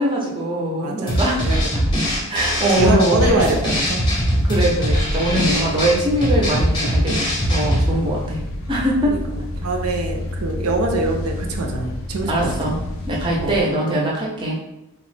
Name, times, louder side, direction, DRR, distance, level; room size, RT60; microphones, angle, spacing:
voice 1, 0.0-1.4 2.3-3.3 4.4-8.4 8.7-9.2 12.3-12.8 13.1-14.5, right 1 dB, 20° right, -3 dB, 0.4 m, -21 dB
voice 2, 0.8-1.9 2.3-2.4 2.7-4.2 5.5-5.8 9.1-9.2 9.6-12.8 13.4-13.7, right 2 dB, 85° right, 3 dB, 0.5 m, -24 dB
sound 1, 1.1-7.9, equal, 20° left, 0.6 m, -21 dB
sound 2, 3.3-13.6, left 1 dB, 70° left, 0.4 m, -30 dB
2.9 x 2.0 x 3.1 m, 0.90 s
head